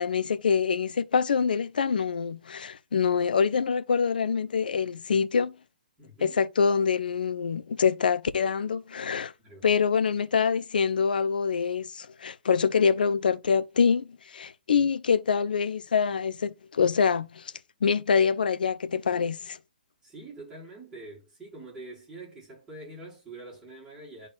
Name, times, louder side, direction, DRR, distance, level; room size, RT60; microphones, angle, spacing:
voice 1, 0.0-5.5 6.2-9.3 9.6-17.5 17.8-19.6, left 6 dB, 65° left, 0.7 m, -25 dB
voice 2, 6.0-6.4 9.4-9.7 14.8-14.9 20.0-24.3, right 2 dB, 10° right, 4.8 m, -45 dB
11.5 x 4.0 x 2.4 m
figure-of-eight pair, 130°, 5 cm